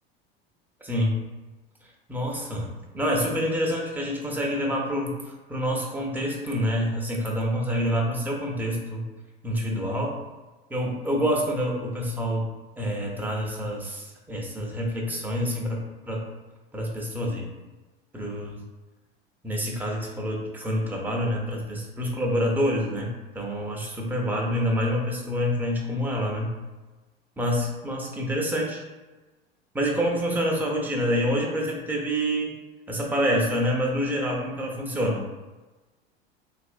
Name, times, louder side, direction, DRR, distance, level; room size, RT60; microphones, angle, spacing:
voice 1, 0.8-1.2 2.1-2.7 2.9-9.0 9.4-10.2 10.7-12.5 12.8-16.2 16.7-17.5 18.1-18.6 19.4-26.5 27.4-28.8 29.7-32.5 32.9-35.3, equal, 5° right, -2 dB, 0.8 m, -27 dB
3.4 x 2.8 x 2.5 m, 1.2 s
hypercardioid pair, 85°, 30 cm